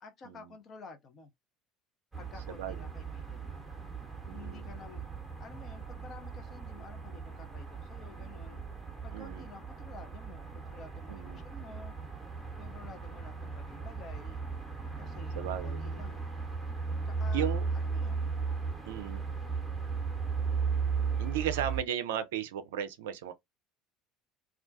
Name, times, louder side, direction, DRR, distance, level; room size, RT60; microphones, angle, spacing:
voice 1, 0.0-1.3 2.2-3.7 4.3-5.1 5.4-8.6 9.0-12.0 12.5-14.4 14.9-16.2 17.1-18.3, left 4 dB, 40° left, 0.6 m, -51 dB
sound 1, 2.1-21.8, right 5 dB, 10° right, 0.8 m, -36 dB
voice 2, 2.5-2.8 4.3-4.7 9.1-9.5 11.1-11.4 15.4-15.8 17.3-17.6 18.8-19.2 21.2-23.3, right 10 dB, 65° right, 0.4 m, -35 dB
2.3 x 2.1 x 2.5 m
figure-of-eight pair, 65°, 0 cm